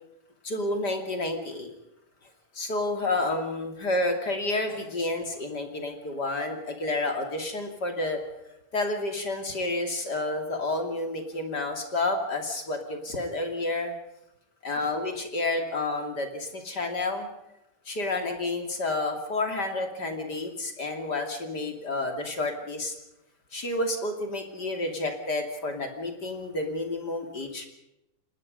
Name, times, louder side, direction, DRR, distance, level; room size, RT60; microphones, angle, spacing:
voice 1, 0.4-1.7 2.5-8.2 8.7-13.9 14.6-17.3 17.8-22.9 23.5-27.7, left 2 dB, 30° left, 4 dB, 2.9 m, -30 dB
28.0 x 19.5 x 5.4 m, 0.86 s
omnidirectional pair, 3.9 m